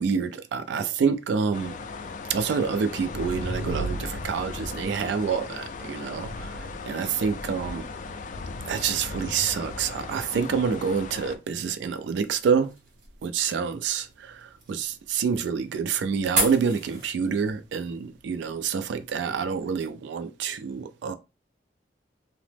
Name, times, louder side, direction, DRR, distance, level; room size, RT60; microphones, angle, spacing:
voice 1, 0.0-1.8 2.3-7.9 8.7-12.7 13.2-21.1, right 6 dB, 75° right, 0.3 m, -27 dB
sound 1, 1.5-11.4, left 2 dB, 45° left, 0.3 m, -36 dB
sound 2, 11.4-19.9, right 3 dB, 50° right, 0.9 m, -37 dB
2.9 x 2.0 x 3.2 m
head